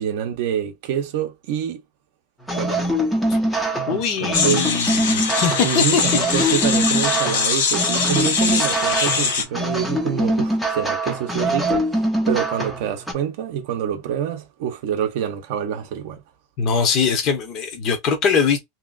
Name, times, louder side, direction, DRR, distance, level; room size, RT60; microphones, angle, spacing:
voice 1, 0.0-1.8 2.6-2.9 3.9-4.7 5.6-16.2, right 9 dB, 50° right, 0.7 m, -26 dB
sound 1, 2.5-13.1, right 1 dB, 5° left, 0.6 m, -23 dB
voice 2, 3.9-6.0 6.3-6.5 16.6-18.6, left 6 dB, 30° left, 0.8 m, -22 dB
sound 2, 4.3-9.4, left 5 dB, 75° left, 1.0 m, -22 dB
3.0 x 2.8 x 2.4 m
supercardioid pair, 175°, 0 cm